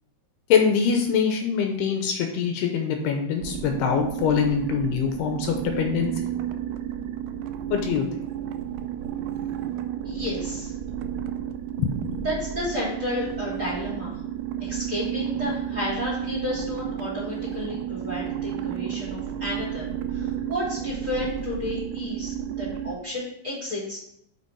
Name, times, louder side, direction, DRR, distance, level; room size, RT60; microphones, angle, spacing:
voice 1, 0.5-6.1 7.7-8.1 11.8-12.2, left 7 dB, 75° left, 4 dB, 2.7 m, -24 dB
sound 1, 3.4-23.0, right 10 dB, 80° right, 2.5 m, -32 dB
voice 2, 10.0-10.7 12.2-14.2 14.6-24.0, left 1 dB, 20° right, -5 dB, 3.2 m, -32 dB
7.2 x 5.9 x 4.6 m, 0.75 s
omnidirectional pair, 4.8 m